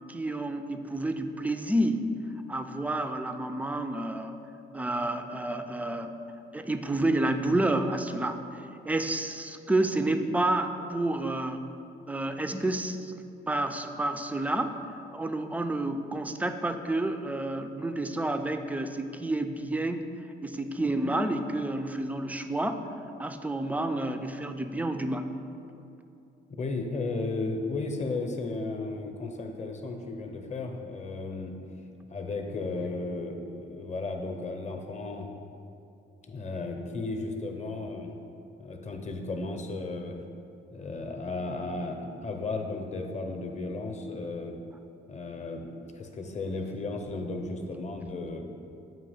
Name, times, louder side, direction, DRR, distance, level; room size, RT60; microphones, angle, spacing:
voice 1, 0.1-2.1 2.5-4.4 4.7-6.1 6.5-8.4 8.8-11.6 12.1-13.1 13.5-14.8 15.1-20.0 20.4-22.9 23.2-25.3, right 1 dB, 5° right, 7 dB, 0.3 m, -29 dB
voice 2, 26.6-31.5 32.1-35.3 36.3-38.1 38.6-40.2 40.7-44.6 45.1-45.7 45.9-48.4, left 3 dB, 35° left, 3 dB, 0.7 m, -34 dB
7.4 x 2.9 x 5.5 m, 2.6 s
cardioid pair, 90°, 20 cm